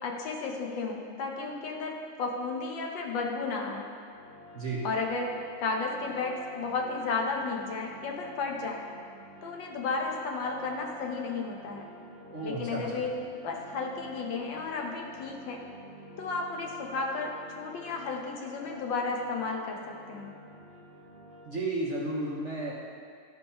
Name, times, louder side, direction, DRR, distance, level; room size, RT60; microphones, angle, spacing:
voice 1, 0.0-3.9 4.8-5.3 5.6-8.8 9.4-11.8 12.4-13.1 13.4-15.6 16.2-20.3, left 4 dB, 75° left, 0 dB, 1.7 m, -33 dB
sound 1, 4.1-21.5, equal, 35° left, 2.5 m, -50 dB
voice 2, 12.3-13.1 21.5-22.7, right 2 dB, 45° right, -4 dB, 1.1 m, -33 dB
12.0 x 4.7 x 5.6 m, 2.3 s
omnidirectional pair, 2.1 m